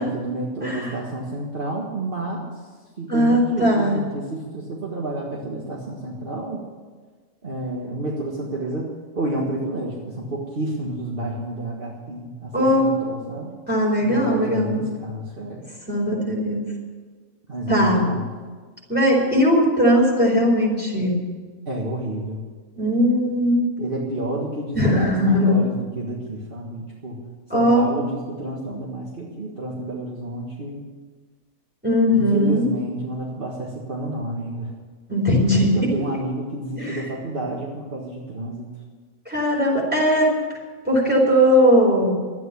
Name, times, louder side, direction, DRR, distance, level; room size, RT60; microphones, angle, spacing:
voice 1, 0.0-2.4 3.0-6.7 7.4-8.9 9.2-13.5 14.0-15.7 17.5-18.2 21.7-22.4 23.8-27.2 27.5-30.8 32.1-34.7 35.7-38.7, right 1 dB, 40° right, -3 dB, 2.0 m, -30 dB
voice 2, 0.6-0.9 3.1-3.9 12.5-12.9 13.7-14.8 15.9-16.6 17.7-18.0 18.9-21.1 22.7-23.6 24.7-25.5 27.5-27.8 31.8-32.6 35.1-35.9 36.8-37.0 39.3-40.3 40.8-42.1, equal, 5° right, -3 dB, 4.6 m, -19 dB
12.5 x 9.5 x 9.7 m, 1.5 s
omnidirectional pair, 1.4 m